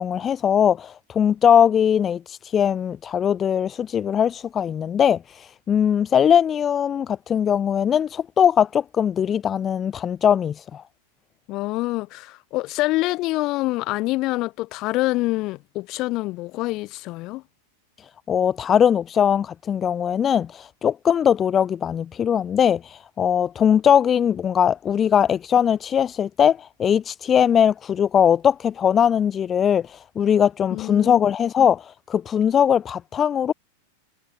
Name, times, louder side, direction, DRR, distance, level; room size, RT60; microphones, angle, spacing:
voice 1, 0.0-10.8 18.3-33.5, left 8 dB, 25° left, 1.1 m, -20 dB
voice 2, 11.5-17.4 30.7-31.2, left 20 dB, 40° left, 1.7 m, -26 dB
figure-of-eight pair, 90°, 0 cm